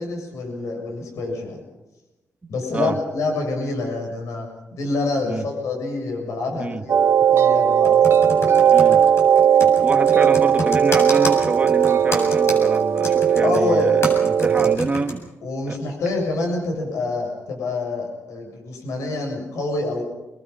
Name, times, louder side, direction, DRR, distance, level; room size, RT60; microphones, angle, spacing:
voice 1, 0.0-1.6 2.5-7.0 7.3-8.4 13.4-13.9 14.6-14.7 15.4-20.0, left 3 dB, 85° left, 2 dB, 7.3 m, -27 dB
voice 2, 2.4-3.0 5.2-5.5 6.6-6.8 8.7-9.0 9.8-15.3 15.7-15.8, right 3 dB, 25° right, 6 dB, 1.7 m, -27 dB
sound 1, 6.9-14.8, right 8 dB, 55° right, 1.3 m, -17 dB
Computer keyboard, 7.8-15.1, left 1 dB, 55° left, 7.7 m, -29 dB
27.0 x 22.0 x 5.7 m, 1.0 s
cardioid pair, 100°, 5 cm